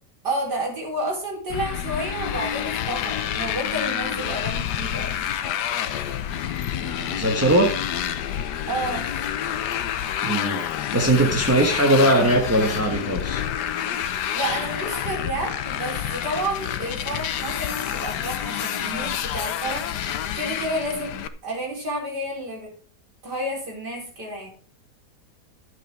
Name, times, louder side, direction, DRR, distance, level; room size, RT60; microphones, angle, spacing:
voice 1, 0.2-5.2 8.7-9.1 14.3-21.2 21.4-22.7 23.2-24.5, right 1 dB, 80° right, -2 dB, 5.1 m, -30 dB
Motorcycle, 1.5-21.3, left 10 dB, 80° left, 1.4 m, -28 dB
voice 2, 6.8-7.7 10.2-10.6 10.9-13.4, right 1 dB, 10° right, 1 dB, 1.1 m, -20 dB
12.0 x 7.8 x 4.7 m, 0.42 s
omnidirectional pair, 1.8 m